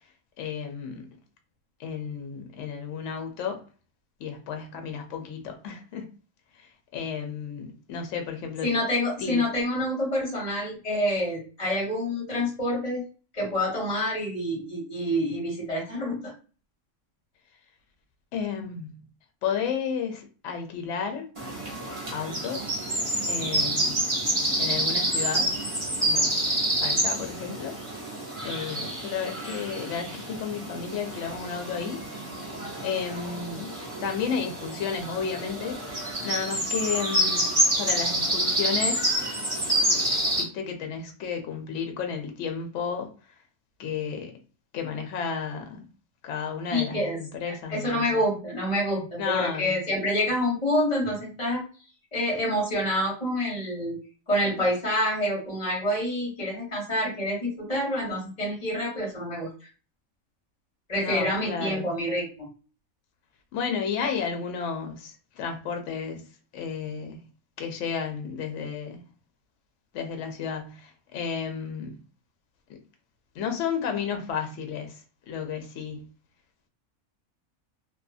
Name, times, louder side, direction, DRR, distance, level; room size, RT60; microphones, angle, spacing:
voice 1, 0.4-1.1 1.8-3.6 4.2-6.1 6.9-8.7 9.2-9.4 18.3-19.0 19.4-21.3 22.1-22.9 23.3-24.0 24.6-25.5 26.0-26.4 26.7-27.8 28.4-32.0 32.8-33.7 34.0-35.8 36.2-37.5 37.8-39.2 40.4-43.1 43.8-44.3 44.7-45.8 46.2-48.2 49.2-49.8 50.2-50.3 61.0-61.9 63.5-66.2 66.5-67.3 67.6-69.0 69.9-72.0 73.3-74.9 75.3-76.1, left 6 dB, 65° left, 0.9 m, -32 dB
voice 2, 8.6-13.0 13.3-16.3 46.7-47.2 47.7-51.6 52.1-54.0 54.3-59.5 60.9-62.4, left 1 dB, 25° left, 1.3 m, -27 dB
sound 1, 21.4-40.4, right 1 dB, 25° right, 0.9 m, -28 dB
2.7 x 2.5 x 2.4 m
omnidirectional pair, 1.5 m